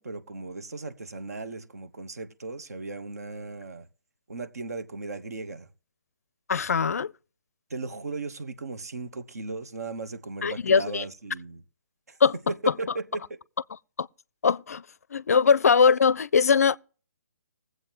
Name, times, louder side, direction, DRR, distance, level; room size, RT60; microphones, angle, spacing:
voice 1, 0.0-3.9 4.3-5.7 7.7-11.6 12.1-12.2 12.5-13.4, right 3 dB, 65° right, 1.2 m, -36 dB
voice 2, 6.5-7.1 10.4-11.0 12.2-12.3 14.0-14.1 14.4-14.8 15.1-16.8, left 6 dB, 60° left, 0.4 m, -21 dB
21.0 x 8.0 x 3.0 m
figure-of-eight pair, 135°, 9 cm